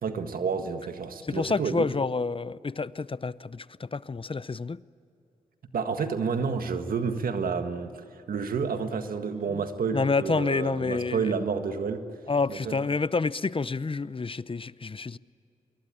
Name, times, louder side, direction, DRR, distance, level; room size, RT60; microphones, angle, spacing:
voice 1, 0.0-1.9 5.7-12.0 12.5-12.8, right 5 dB, 80° right, 1.7 m, -30 dB
voice 2, 1.3-4.8 9.5-9.6 9.9-11.3 12.3-15.2, left 4 dB, 40° left, 0.7 m, -28 dB
26.0 x 23.0 x 8.7 m
cardioid pair, 40°, 15 cm